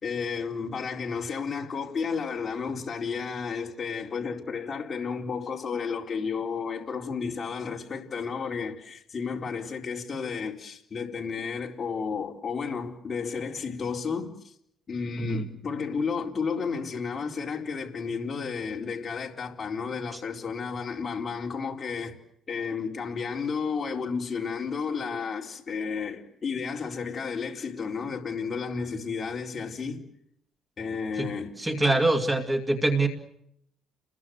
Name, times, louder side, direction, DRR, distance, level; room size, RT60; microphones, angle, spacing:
voice 1, 0.0-14.5 14.9-22.1 22.5-30.0 30.8-31.6, left 5 dB, 25° left, 4.2 m, -32 dB
voice 2, 31.6-33.1, right 2 dB, 10° right, 2.3 m, -24 dB
30.0 x 22.0 x 7.9 m
cardioid pair, 175°, 0 cm